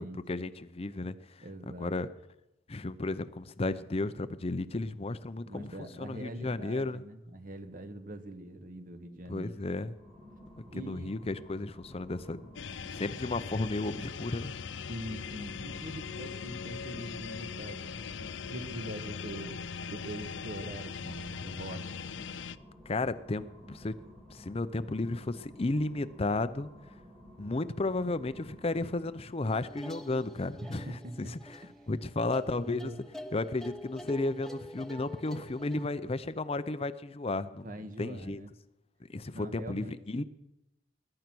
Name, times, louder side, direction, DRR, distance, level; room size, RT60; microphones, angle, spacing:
voice 1, 0.0-2.1 2.7-7.0 9.3-9.9 10.7-14.5 22.9-23.9 24.3-26.7 27.4-32.9 33.3-37.7 38.0-38.4 39.1-40.2, left 2 dB, 35° left, 13 dB, 0.6 m, -34 dB
voice 2, 1.4-1.9 5.4-9.5 10.7-11.2 14.9-19.6 19.9-21.9 30.6-31.8 32.6-33.0 37.6-38.5 39.3-40.2, right 1 dB, 50° right, 8 dB, 1.4 m, -43 dB
sound 1, 9.8-29.5, equal, 30° right, 3.8 m, -53 dB
sound 2, 12.5-22.6, left 6 dB, 90° left, 0.5 m, -40 dB
sound 3, 29.5-35.9, left 1 dB, ahead, 0.8 m, -46 dB
21.0 x 11.0 x 6.1 m, 0.91 s
head